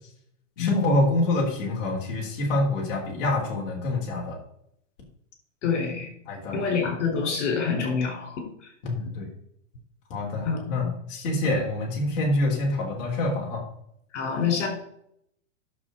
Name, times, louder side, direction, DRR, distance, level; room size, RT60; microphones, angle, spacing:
voice 1, 0.6-4.4 6.3-6.6 8.8-9.3 10.1-13.6, left 2 dB, 45° left, -3 dB, 3.6 m, -26 dB
voice 2, 5.6-6.1 6.5-8.7 10.4-10.9 14.1-14.7, left 5 dB, 65° left, 2 dB, 4.5 m, -27 dB
11.0 x 6.8 x 4.0 m, 0.72 s
supercardioid pair, 160°, 38 cm